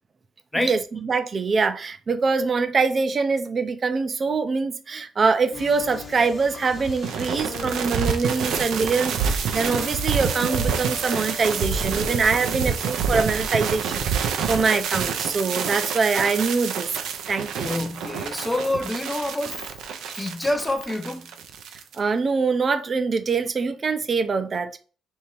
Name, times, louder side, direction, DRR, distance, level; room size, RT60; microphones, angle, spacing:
voice 1, 0.6-16.9 17.3-17.7 22.0-24.7, right 4 dB, 40° right, 0.5 m, -24 dB
sound 1, 5.5-12.9, left 5 dB, 40° left, 1.1 m, -39 dB
sound 2, 6.7-22.0, right 6 dB, 80° right, 0.6 m, -28 dB
voice 2, 17.6-19.6 20.2-21.4, left 1 dB, 15° left, 0.6 m, -27 dB
3.6 x 2.8 x 4.4 m
cardioid pair, 90°, 0 cm